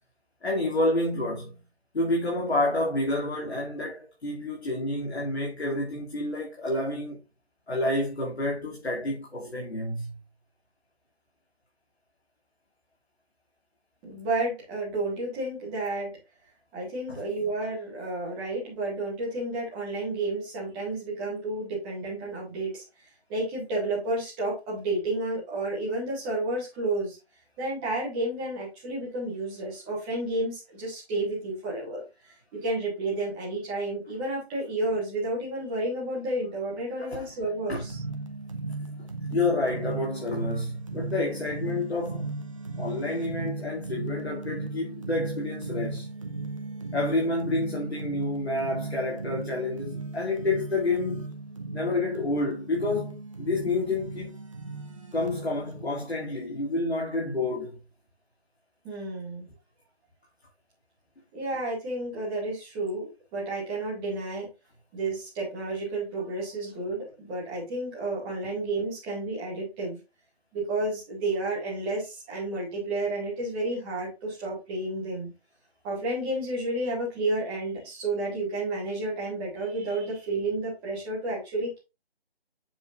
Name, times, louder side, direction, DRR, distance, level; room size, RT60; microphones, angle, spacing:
voice 1, 0.4-1.6 1.9-7.2 7.7-10.1 17.1-17.2 37.0-37.3 37.7-37.8 39.3-42.5 42.8-46.1 46.9-51.4 51.7-54.3 55.1-57.8, left 2 dB, 80° left, 2.6 m, -29 dB
voice 2, 14.0-16.2 16.7-22.8 23.3-27.2 27.6-32.0 32.5-38.0 58.8-59.5 61.3-64.5 64.9-70.0 70.5-75.3 75.8-81.8, right 2 dB, 5° right, 1.1 m, -31 dB
sound 1, 37.8-55.9, right 3 dB, 30° right, 0.8 m, -36 dB
7.2 x 5.3 x 2.5 m
figure-of-eight pair, 165°, 32 cm